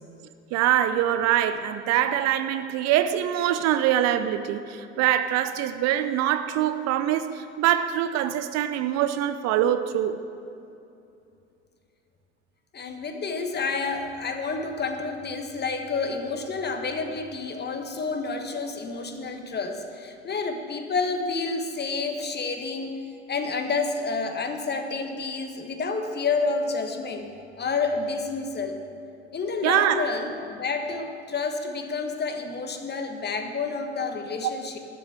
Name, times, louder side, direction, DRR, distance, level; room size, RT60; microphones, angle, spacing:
voice 1, 0.5-10.2 29.6-30.0, right 11 dB, 50° right, 11 dB, 0.7 m, -24 dB
voice 2, 12.7-27.3 27.6-28.8 29.3-34.8, left 4 dB, 30° left, 6 dB, 1.4 m, -29 dB
12.0 x 6.6 x 8.6 m, 2.6 s
figure-of-eight pair, 55°, 33 cm